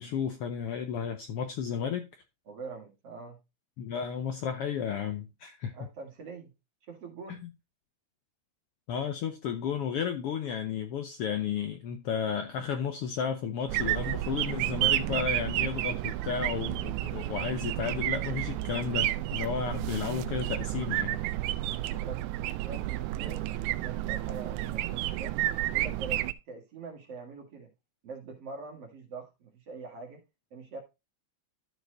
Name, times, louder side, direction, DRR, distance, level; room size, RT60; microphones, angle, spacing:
voice 1, 0.0-2.1 3.8-5.7 7.3-7.5 8.9-21.2, left 7 dB, 70° left, 1.4 m, -33 dB
voice 2, 2.5-3.4 5.7-6.5 6.9-7.5 21.9-25.4 25.7-27.7 28.0-30.2 30.5-30.8, right 4 dB, 55° right, 2.9 m, -44 dB
sound 1, 13.7-26.3, right 15 dB, 90° right, 2.0 m, -31 dB
13.0 x 4.7 x 3.9 m
omnidirectional pair, 3.3 m